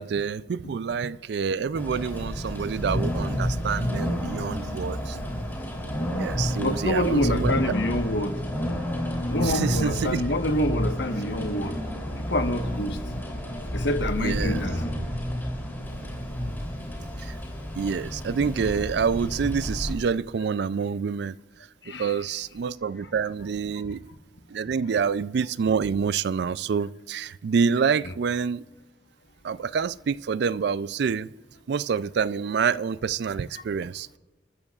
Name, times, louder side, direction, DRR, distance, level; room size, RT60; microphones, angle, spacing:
voice 1, 0.0-5.2 6.2-7.5 9.4-10.2 14.2-14.6 17.2-17.3 17.8-21.3 22.0-24.0 24.5-28.6 29.4-31.3 31.7-34.2, right 6 dB, 60° right, 0.4 m, -27 dB
sound 1, 1.7-19.9, equal, 10° left, 3.2 m, -30 dB
voice 2, 6.6-8.3 9.3-11.8 12.2-13.0 13.7-14.8 21.8-22.2 23.0-23.1 23.8-24.0 28.0-28.1 33.5-33.6, left 1 dB, 65° left, 1.3 m, -27 dB
29.5 x 14.0 x 2.4 m
head